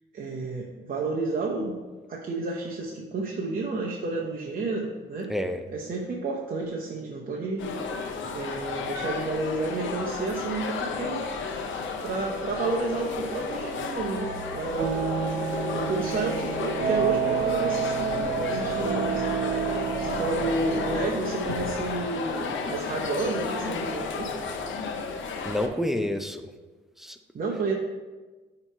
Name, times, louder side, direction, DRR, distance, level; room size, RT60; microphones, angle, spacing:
voice 1, 0.1-1.8 2.1-5.3 5.7-7.7 8.3-11.3 12.0-15.3 15.7-19.3 20.0-24.3 27.3-27.7, right 3 dB, 45° right, -2 dB, 0.8 m, -31 dB
voice 2, 5.3-5.6 25.5-26.4 27.0-27.2, left 1 dB, ahead, 7 dB, 0.5 m, -28 dB
sound 1, 7.6-25.7, left 4 dB, 75° left, 0.8 m, -33 dB
sound 2, 14.2-21.0, right 7 dB, 70° right, 0.9 m, -29 dB
8.8 x 3.0 x 4.5 m, 1.3 s
cardioid pair, 90°, 20 cm